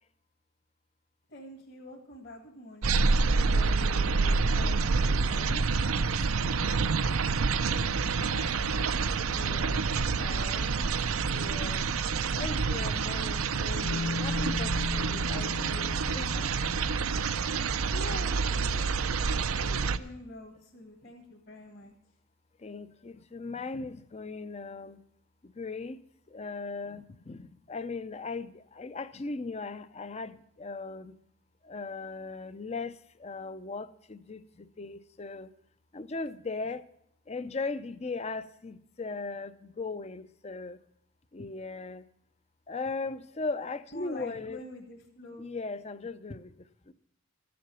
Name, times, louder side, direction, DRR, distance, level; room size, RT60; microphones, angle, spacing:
voice 1, 1.3-3.2 7.7-8.9 9.3-10.9 17.9-21.9 43.9-45.5, left 1 dB, 50° left, 1.8 m, -46 dB
sound 1, 2.8-20.0, right 4 dB, 85° right, 0.6 m, -28 dB
voice 2, 3.2-5.6 9.3-9.8 10.2-10.9 11.3-11.9 12.4-16.5 22.6-25.0 25.4-26.0 26.3-31.1 31.6-35.5 35.9-36.9 37.3-40.8 41.3-42.0 42.7-44.6 45.4-46.5 46.9-47.0, left 3 dB, 30° left, 0.5 m, -39 dB
Bass guitar, 13.8-19.9, left 4 dB, 85° left, 0.9 m, -39 dB
14.0 x 7.7 x 6.9 m
head